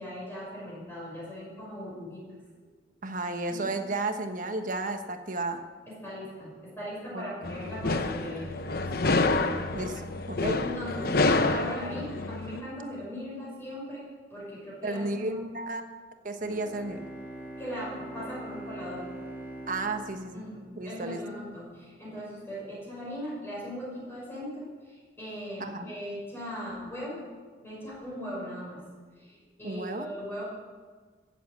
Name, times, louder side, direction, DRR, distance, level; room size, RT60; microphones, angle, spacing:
voice 1, 0.0-2.2 3.4-3.7 5.9-9.0 10.6-14.0 14.3-15.4 17.6-19.0 20.3-27.2 27.6-28.8 29.1-30.4, equal, 15° left, -6 dB, 6.0 m, -39 dB
voice 2, 3.0-5.6 7.1-7.5 9.7-10.6 14.8-15.8 16.2-17.1 19.7-20.4 20.8-21.2 25.6-25.9 29.6-30.1, right 2 dB, 45° right, 7 dB, 1.2 m, -33 dB
sound 1, 7.4-12.6, left 3 dB, 55° left, 0.9 m, -28 dB
Bowed string instrument, 16.4-21.3, right 1 dB, 15° right, 2.4 m, -43 dB
15.0 x 8.4 x 8.5 m, 1.5 s
head